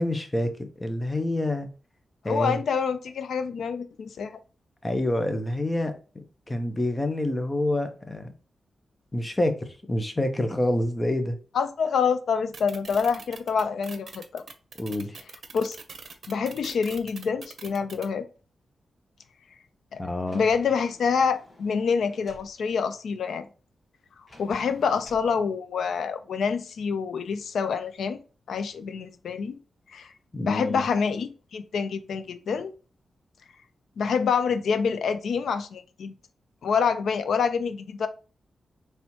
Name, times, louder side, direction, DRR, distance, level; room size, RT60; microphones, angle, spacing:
voice 1, 0.0-1.7 2.2-2.6 4.8-5.9 6.5-8.3 9.1-11.4 14.8-15.1 20.0-20.4 30.3-30.8, left 1 dB, 20° left, 0.8 m, -27 dB
voice 2, 2.3-4.4 11.5-14.4 15.5-15.8 16.3-18.3 19.9-20.0 20.3-23.5 24.4-28.2 28.5-29.6 29.9-30.1 30.4-32.7 34.0-36.1 36.6-38.1, left 6 dB, 85° left, 0.4 m, -26 dB
sound 1, 12.5-18.1, right 5 dB, 60° right, 0.7 m, -42 dB
Sliding door, 20.2-22.5 24.3-25.3, left 1 dB, 50° left, 1.5 m, -51 dB
4.3 x 3.4 x 2.8 m
cardioid pair, 85°, 0 cm